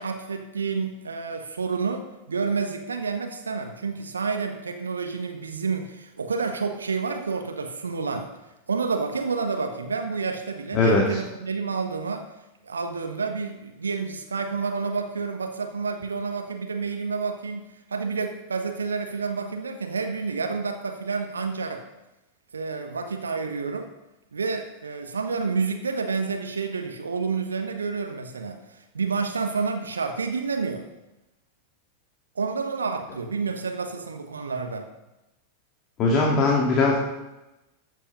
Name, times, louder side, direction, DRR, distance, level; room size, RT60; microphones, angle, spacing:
voice 1, 0.0-8.3 8.7-12.3 12.6-21.8 22.5-23.9 24.3-28.6 28.9-30.8 32.3-34.9, right 4 dB, 75° right, 6 dB, 1.3 m, -29 dB
voice 2, 36.0-37.0, left 3 dB, 35° left, -2 dB, 2.4 m, -19 dB
14.0 x 8.2 x 5.6 m, 0.98 s
figure-of-eight pair, 90°, 0 cm